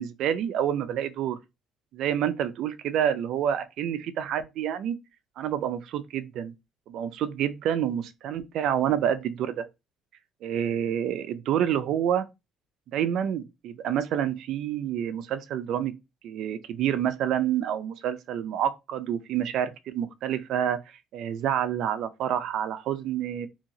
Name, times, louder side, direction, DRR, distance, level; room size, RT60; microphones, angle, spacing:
voice 1, 0.0-1.4 1.9-5.0 5.4-6.5 6.9-9.7 10.4-12.2 12.9-15.9 16.2-23.5, right 10 dB, 60° right, 0.4 m, -28 dB
2.8 x 2.7 x 2.6 m
cardioid pair, 160°, 0 cm